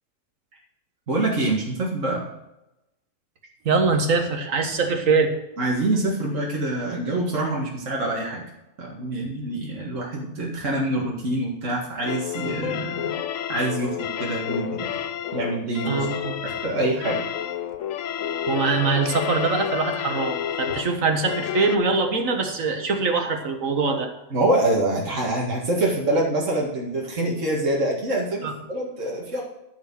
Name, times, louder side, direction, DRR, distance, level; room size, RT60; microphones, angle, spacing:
voice 1, 1.1-2.2 5.6-8.4 8.8-13.0 13.5-14.9 15.3-16.1 16.4-17.2 24.3-29.4, right 1 dB, 70° right, -3 dB, 2.2 m, -25 dB
voice 2, 3.7-5.3 15.9-16.4 18.5-24.1 28.4-28.5, right 4 dB, 85° right, 5 dB, 1.8 m, -23 dB
sound 1, 12.1-21.8, left 10 dB, 80° left, 1.0 m, -30 dB
13.5 x 5.0 x 7.5 m, 0.92 s
omnidirectional pair, 1.3 m